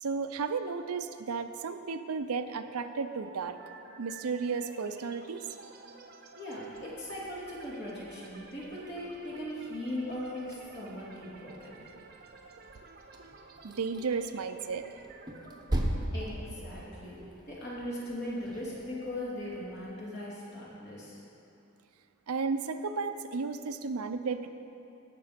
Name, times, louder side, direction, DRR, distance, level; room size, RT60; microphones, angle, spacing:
voice 1, 0.0-3.6 4.0-5.5 13.6-14.8 22.3-24.5, right 5 dB, 85° right, 9 dB, 0.6 m, -33 dB
sound 1, 2.8-20.6, right 4 dB, 45° right, 0.8 m, -53 dB
voice 2, 6.3-11.8 16.1-17.2 17.5-21.2, left 1 dB, 50° left, -6 dB, 2.9 m, -39 dB
sound 2, 6.7-19.9, right 1 dB, 20° right, 0.9 m, -41 dB
17.0 x 6.7 x 5.1 m, 2.8 s
head